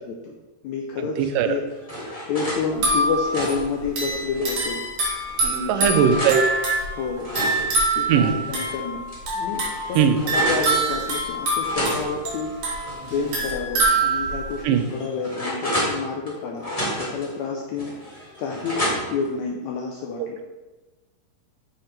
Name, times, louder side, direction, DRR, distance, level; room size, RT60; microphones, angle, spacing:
voice 1, 0.6-1.7 2.3-4.8 5.4-6.2 6.9-7.3 7.9-9.0 9.4-9.6 9.9-12.5 13.1-17.9 18.4-20.4, left 5 dB, 85° left, 0 dB, 1.6 m, -29 dB
voice 2, 1.2-1.6 5.7-6.4 8.1-8.3 10.0-10.2 14.6-14.8, right 8 dB, 90° right, 8 dB, 2.3 m, -19 dB
sound 1, 1.3-2.6 3.1-4.7 5.3-6.4 7.0-8.7 9.1-9.2 9.5-10.7 11.6-13.4 13.8-13.9 14.5-16.3 16.6-17.3 17.8-19.3, equal, 45° left, 0.4 m, -31 dB
sound 2, 2.7-14.6, right 2 dB, 60° right, 3.2 m, -25 dB
7.3 x 5.6 x 3.3 m, 1.2 s
omnidirectional pair, 3.8 m